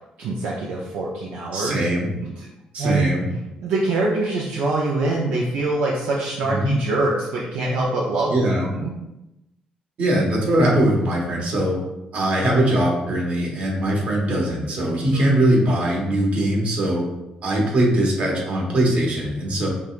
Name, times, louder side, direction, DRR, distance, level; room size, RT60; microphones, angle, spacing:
voice 1, 0.2-1.8 2.8-3.1 3.6-8.3 8.6-8.9 15.1-15.3, right 2 dB, 90° right, -3 dB, 0.5 m, -24 dB
voice 2, 1.5-2.1 2.7-3.3 6.5-6.7 8.3-8.7 10.0-11.7 12.1-17.0 17.4-19.7, right 1 dB, 65° right, -1 dB, 1.3 m, -21 dB
5.2 x 3.3 x 2.5 m, 0.94 s
cardioid pair, 85°, 3 cm